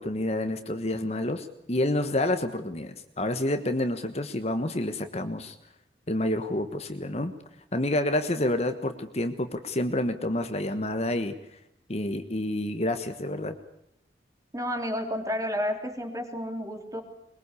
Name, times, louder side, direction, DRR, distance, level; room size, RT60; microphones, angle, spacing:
voice 1, 0.0-5.6 6.1-7.3 7.7-11.3 11.9-13.5, left 1 dB, 35° left, 8 dB, 1.3 m, -28 dB
voice 2, 14.5-17.0, equal, 20° right, 5 dB, 3.4 m, -31 dB
22.5 x 22.0 x 8.4 m, 0.78 s
head